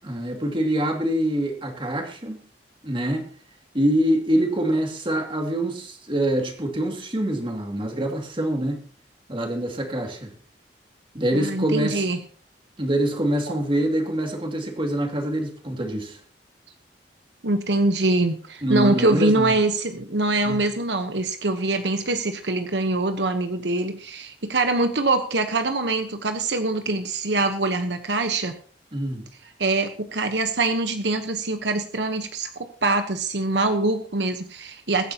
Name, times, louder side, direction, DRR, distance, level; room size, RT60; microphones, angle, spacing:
voice 1, 0.0-2.4 2.8-3.3 3.7-8.8 9.3-10.3 11.1-12.1 12.8-16.2 18.6-19.5 20.4-20.7 28.9-29.3, right 1 dB, 30° right, 2.5 m, -25 dB
voice 2, 11.3-12.2 17.4-28.5 29.6-35.1, right 2 dB, 80° right, 1.2 m, -24 dB
23.0 x 9.9 x 3.0 m
head